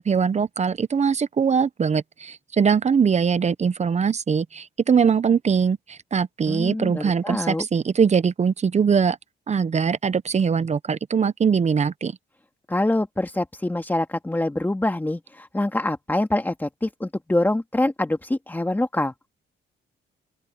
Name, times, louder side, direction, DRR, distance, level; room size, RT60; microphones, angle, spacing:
voice 1, 0.0-9.2 9.5-12.1, right 6 dB, 35° right, 0.8 m, -22 dB
voice 2, 6.5-7.7 12.7-19.1, left 1 dB, 10° left, 2.2 m, -25 dB
open air
cardioid pair, 90°, 20 cm